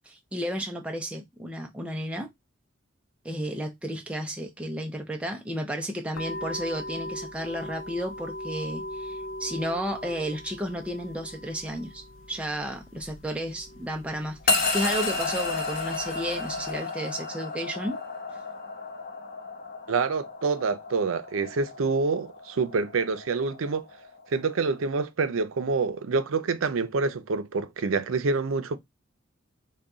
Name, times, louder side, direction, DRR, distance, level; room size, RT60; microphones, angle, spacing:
voice 1, 0.1-2.3 3.2-18.0, equal, 5° right, 0.4 m, -33 dB
sound 1, 6.1-16.8, left 1 dB, 70° left, 0.5 m, -41 dB
sound 2, 14.5-24.8, left 3 dB, 45° left, 0.9 m, -32 dB
voice 2, 19.9-23.8 24.3-28.8, right 4 dB, 85° right, 0.5 m, -27 dB
3.8 x 2.3 x 3.5 m
head